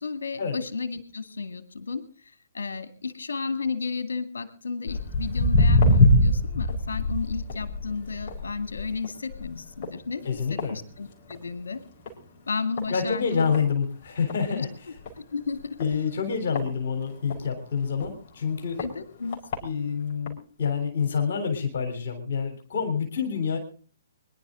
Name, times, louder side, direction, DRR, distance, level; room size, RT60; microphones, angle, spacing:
voice 1, 0.0-2.0 2.5-11.8 12.5-13.5 14.5-14.9 15.3-15.8 18.8-19.4, left 4 dB, 75° left, 10 dB, 2.1 m, -33 dB
Walk footsteps, 4.9-11.5 11.8-12.2 12.8-12.9 13.5-13.6 14.0-14.1 14.3-14.4 15.0-15.1 15.8-17.4 18.0-18.1 18.8-18.9 19.3-19.6 20.3-20.4, left 1 dB, 40° left, 5.0 m, -23 dB
voice 2, 10.3-10.8 12.9-14.7 15.8-18.8 19.6-23.6, left 6 dB, 60° left, 5 dB, 3.6 m, -27 dB
24.0 x 11.0 x 3.8 m, 0.40 s
figure-of-eight pair, 130°, 0 cm